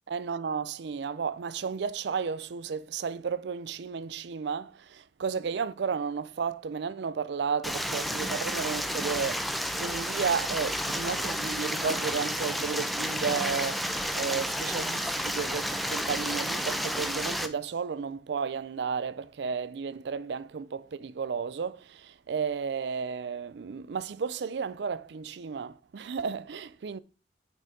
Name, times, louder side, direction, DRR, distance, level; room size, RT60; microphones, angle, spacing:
voice 1, 0.1-27.0, right 6 dB, 70° right, 0.4 m, -33 dB
Stream, 7.6-17.5, equal, ahead, 0.5 m, -31 dB
8.9 x 4.9 x 3.8 m
head